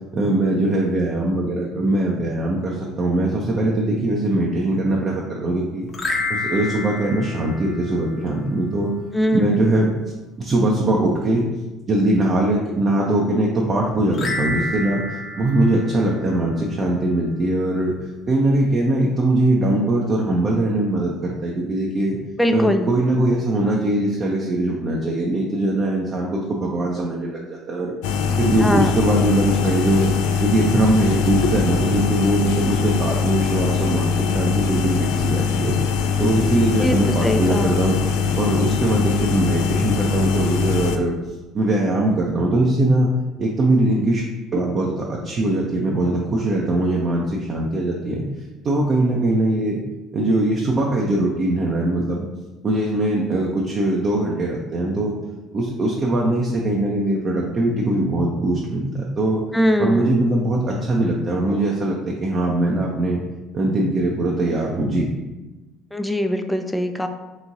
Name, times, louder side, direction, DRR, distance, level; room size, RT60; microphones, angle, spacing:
voice 1, 0.1-5.9 6.3-8.9 9.3-9.9 10.4-11.4 11.9-17.9 18.3-22.2 22.5-27.9 28.4-30.1 30.4-35.8 36.2-38.0 38.4-41.1 41.5-43.1 43.4-44.2 44.5-48.2 48.6-49.8 50.1-52.2 52.6-55.2 55.5-59.4 59.8-63.2 63.5-65.1, right 1 dB, 40° right, -2 dB, 0.6 m, -21 dB
sound 1, 5.9-8.4 14.1-16.7, left 2 dB, 35° left, 0.9 m, -29 dB
voice 2, 9.1-9.6 22.4-22.9 28.6-28.9 36.8-37.9 59.5-60.2 65.9-67.1, equal, 5° left, 7 dB, 0.4 m, -21 dB
sound 2, 28.0-41.0, left 6 dB, 70° left, 0.3 m, -22 dB
3.5 x 3.1 x 3.9 m, 1.1 s
hypercardioid pair, 60°, 0 cm